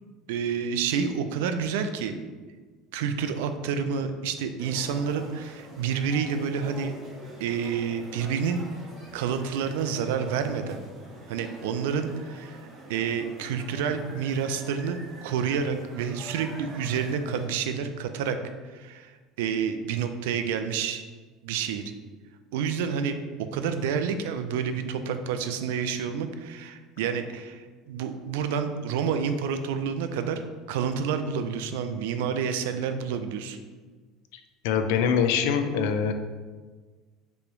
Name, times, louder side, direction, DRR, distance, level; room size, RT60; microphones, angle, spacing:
voice 1, 0.3-2.2 2.9-6.9 7.4-8.6 9.1-10.8 11.3-18.4 18.7-19.1 19.4-21.0 21.4-21.8 22.5-30.4 30.7-33.6, right 6 dB, 85° right, 8 dB, 0.3 m, -29 dB
sound 1, 4.6-17.5, right 1 dB, 35° right, 1.1 m, -45 dB
voice 2, 34.6-36.1, left 7 dB, 80° left, 7 dB, 0.3 m, -23 dB
3.4 x 3.1 x 3.1 m, 1.4 s
supercardioid pair, 110°, 0 cm